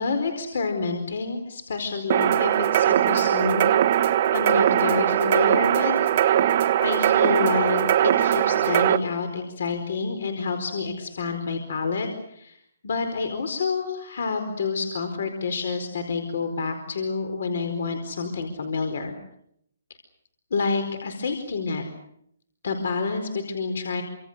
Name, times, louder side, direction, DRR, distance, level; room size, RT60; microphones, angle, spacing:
voice 1, 0.0-3.7 4.3-12.6 12.8-19.1 20.5-21.8 22.6-24.0, left 4 dB, 60° left, 7 dB, 4.5 m, -28 dB
sound 1, 2.1-9.0, right 11 dB, 30° right, 1.3 m, -20 dB
28.5 x 26.0 x 6.7 m, 0.73 s
hypercardioid pair, 175°, 0 cm